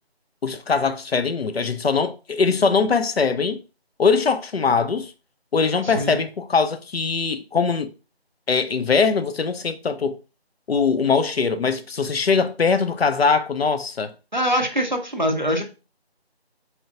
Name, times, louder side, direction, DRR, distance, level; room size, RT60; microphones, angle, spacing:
voice 1, 0.4-3.6 4.0-5.1 5.5-7.9 8.5-10.2 10.7-14.1, left 5 dB, 70° left, 0.5 m, -21 dB
voice 2, 5.8-6.2 14.3-15.6, equal, 45° right, 0.4 m, -23 dB
4.3 x 2.4 x 2.4 m
figure-of-eight pair, 175°, 32 cm